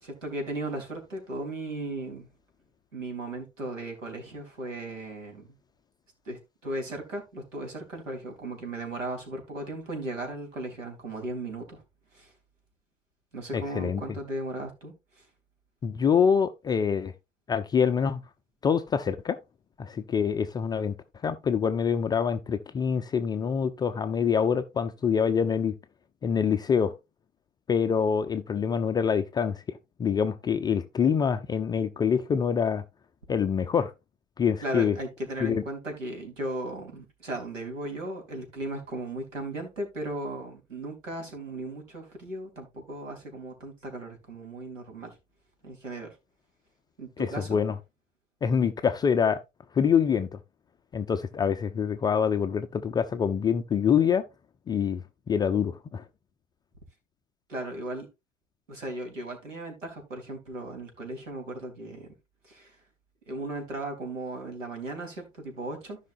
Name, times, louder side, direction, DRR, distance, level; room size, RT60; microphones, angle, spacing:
voice 1, 0.0-2.3 2.9-5.6 6.3-11.8 12.1-12.3 13.3-15.3 34.6-45.1 45.6-46.1 47.0-47.6 57.5-58.1 58.7-62.1 62.4-62.8 63.3-66.0, right 2 dB, 85° right, 3.9 m, -36 dB
voice 2, 13.5-14.0 15.8-17.1 17.5-18.2 18.6-19.4 19.8-21.0 21.2-25.7 26.2-26.9 27.7-32.8 33.3-33.9 34.4-35.0 35.4-35.6 47.2-47.7 48.4-49.4 49.7-50.3 50.9-54.2 54.7-56.0, left 7 dB, 10° left, 0.4 m, -25 dB
15.0 x 5.6 x 2.6 m
figure-of-eight pair, 95°, 37 cm